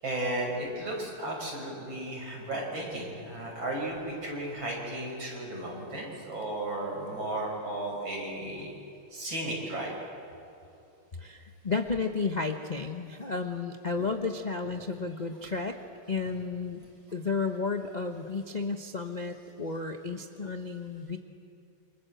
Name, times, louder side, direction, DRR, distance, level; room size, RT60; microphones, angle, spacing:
voice 1, 0.0-8.7 9.1-9.9 13.9-14.1 14.6-14.8, right 1 dB, 60° right, -2 dB, 6.8 m, -34 dB
voice 2, 11.2-15.8 16.1-16.8 17.1-21.2, left 4 dB, 35° left, 4 dB, 0.7 m, -32 dB
28.0 x 25.5 x 7.8 m, 2.6 s
omnidirectional pair, 2.4 m